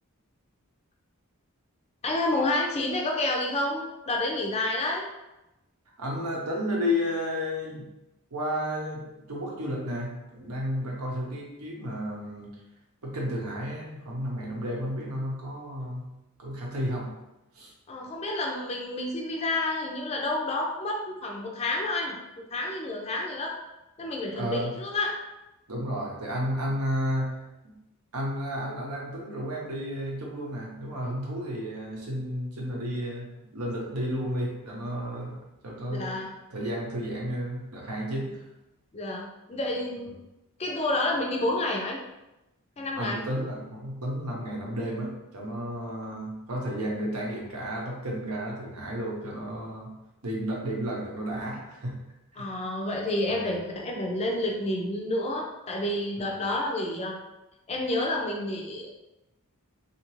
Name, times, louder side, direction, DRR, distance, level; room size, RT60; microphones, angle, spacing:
voice 1, 2.0-5.0 17.9-23.5 24.0-25.1 35.9-36.3 38.9-40.1 40.6-42.0 42.8-43.2 52.4-57.2 57.7-58.9, left 2 dB, 30° left, 0 dB, 0.4 m, -29 dB
voice 2, 6.0-7.9 8.3-12.5 13.0-16.1 16.4-17.1 17.5-17.7 24.3-24.8 25.7-27.4 27.6-27.7 28.1-36.2 36.5-38.4 43.0-49.9 50.2-52.0 52.3-52.5 53.3-53.5 56.2-56.4, equal, 80° right, -2 dB, 0.8 m, -32 dB
2.8 x 2.4 x 3.0 m, 0.95 s
head